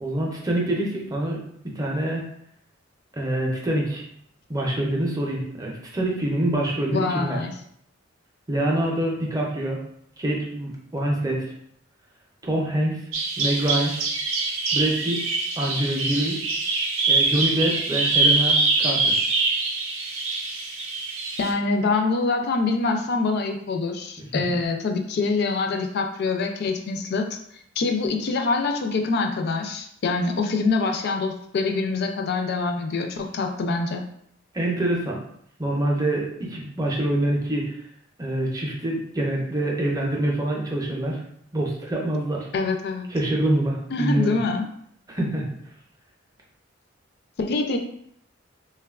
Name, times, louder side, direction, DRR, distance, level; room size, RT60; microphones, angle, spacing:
voice 1, 0.0-1.4 1.8-2.2 3.1-4.0 4.5-7.4 8.5-9.8 10.2-11.5 12.4-13.0 13.4-13.9 14.7-15.3 15.6-16.4 17.1-19.2 24.2-24.3 34.5-35.2 35.6-37.8 38.2-41.2 41.5-42.5 43.1-44.4 45.1-45.5, right 1 dB, 20° right, -2 dB, 0.5 m, -25 dB
voice 2, 6.9-7.5 21.4-27.2 27.8-34.1 42.5-43.1 43.9-44.6 47.4-47.8, left 3 dB, 55° left, 4 dB, 0.3 m, -25 dB
Bird vocalization bird call bird song, 13.1-21.5, right 3 dB, 85° right, 0.5 m, -24 dB
3.4 x 2.2 x 2.3 m, 0.70 s
head